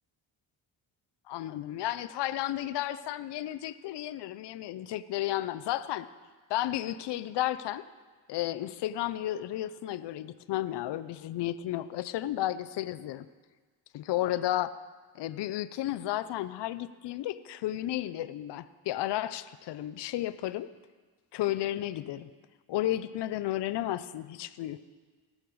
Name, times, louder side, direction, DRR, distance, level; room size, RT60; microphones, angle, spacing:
voice 1, 1.3-6.1 6.5-7.8 8.3-13.3 13.9-14.7 15.1-20.7 21.3-22.3 22.7-24.8, left 14 dB, 70° left, 14 dB, 0.6 m, -33 dB
18.0 x 6.6 x 4.7 m, 1.4 s
cardioid pair, 90°, 44 cm